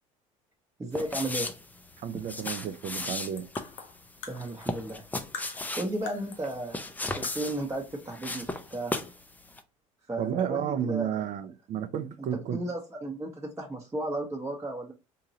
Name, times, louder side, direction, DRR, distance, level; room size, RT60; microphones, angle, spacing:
voice 1, 0.8-1.5 4.3-5.0 5.8-6.8 7.1-8.9 10.1-11.3 12.3-14.9, right 1 dB, 15° right, 0.9 m, -34 dB
sound 1, 0.9-9.2 9.5-9.6, left 2 dB, 10° left, 0.5 m, -36 dB
voice 2, 2.0-3.5 10.2-12.6, right 9 dB, 45° right, 0.5 m, -32 dB
sound 2, 2.2-5.0 5.3-6.5 6.8-6.9 7.2-7.7, left 6 dB, 75° left, 0.8 m, -44 dB
3.7 x 2.8 x 2.7 m
hypercardioid pair, 65°, 17 cm